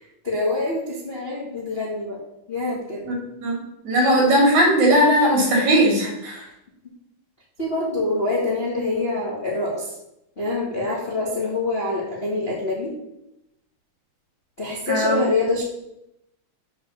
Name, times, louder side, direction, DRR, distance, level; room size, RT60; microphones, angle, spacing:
voice 1, 0.2-2.2 2.5-3.0 7.6-9.9 10.4-12.9 14.6-15.6, left 2 dB, 25° left, -3 dB, 1.3 m, -25 dB
voice 2, 3.4-6.4 14.9-15.2, equal, 65° right, -1 dB, 3.9 m, -18 dB
7.7 x 4.5 x 7.1 m, 0.83 s
omnidirectional pair, 3.7 m